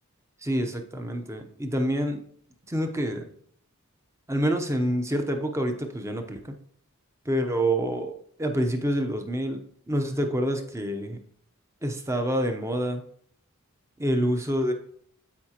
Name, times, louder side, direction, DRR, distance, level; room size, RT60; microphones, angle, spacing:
voice 1, 0.4-2.2 2.7-3.3 4.3-6.5 7.2-11.2 11.8-13.0 14.0-14.7, right 1 dB, 15° right, 5 dB, 0.8 m, -27 dB
13.0 x 4.9 x 2.9 m, 0.63 s
head